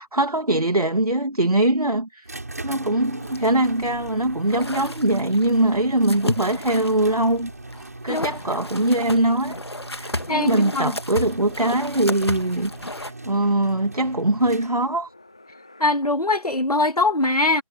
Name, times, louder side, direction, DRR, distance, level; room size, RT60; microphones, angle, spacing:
voice 1, 0.0-2.3 2.6-9.6 9.9-15.1, right 1 dB, 75° right, 2.3 m, -22 dB
sound 1, 2.2-15.0, right 2 dB, 25° right, 7.1 m, -39 dB
sound 2, 3.2-13.1, left 1 dB, 45° left, 1.9 m, -33 dB
voice 2, 10.3-10.9 15.8-17.6, left 2 dB, 80° left, 2.6 m, -22 dB
sound 3, 10.7-15.9, left 2 dB, 10° left, 2.2 m, -54 dB
figure-of-eight pair, 180°, 19 cm